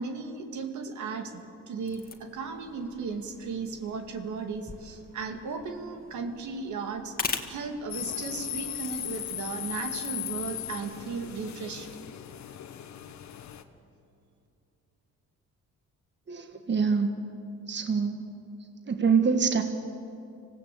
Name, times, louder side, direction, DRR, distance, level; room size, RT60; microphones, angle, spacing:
voice 1, 0.0-7.2 7.5-11.9, right 4 dB, 70° right, 5 dB, 2.3 m, -36 dB
sound 1, 1.8-11.5, left 4 dB, 30° left, 2.0 m, -42 dB
sound 2, 7.9-13.6, left 11 dB, 65° left, 1.4 m, -37 dB
voice 2, 16.3-17.2 17.7-18.2 18.9-19.6, right 5 dB, 35° right, 6 dB, 1.6 m, -25 dB
26.0 x 16.5 x 8.4 m, 2.7 s
cardioid pair, 90°, 30 cm